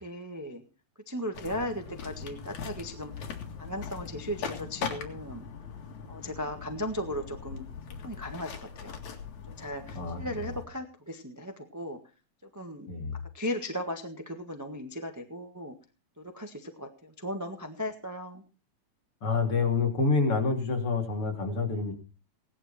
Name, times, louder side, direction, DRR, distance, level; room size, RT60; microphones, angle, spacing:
voice 1, 0.0-0.6 1.1-3.3 3.6-5.4 6.1-7.6 8.0-9.0 9.5-12.0 12.5-12.9 13.3-15.7 16.2-18.4, equal, 10° right, 4 dB, 0.8 m, -37 dB
sound 1, 1.3-10.7, left 6 dB, 75° left, 3.4 m, -41 dB
voice 2, 9.9-10.3 12.9-13.1 19.2-21.9, left 4 dB, 50° left, 2 dB, 3.9 m, -27 dB
17.5 x 11.5 x 4.4 m, 0.34 s
omnidirectional pair, 3.3 m